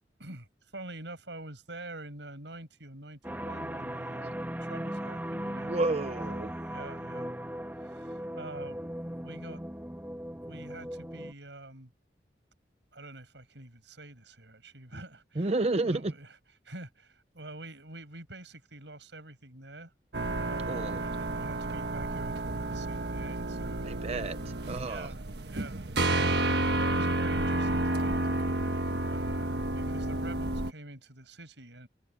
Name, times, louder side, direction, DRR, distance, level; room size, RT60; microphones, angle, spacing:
voice 1, 0.2-5.7 6.2-7.4 7.8-8.9 9.2-9.7 10.4-11.9 12.9-15.5 15.8-16.4 16.6-19.9 20.3-23.9 24.8-25.9 26.4-31.9, right 2 dB, 85° right, 6.4 m, -46 dB
sound 1, 3.2-11.3, equal, 10° right, 1.8 m, -38 dB
voice 2, 5.6-6.5 15.4-16.1 20.7-21.0 23.8-25.1, right 2 dB, 35° right, 0.6 m, -31 dB
sound 2, 20.1-30.7, right 2 dB, 70° right, 1.4 m, -30 dB
head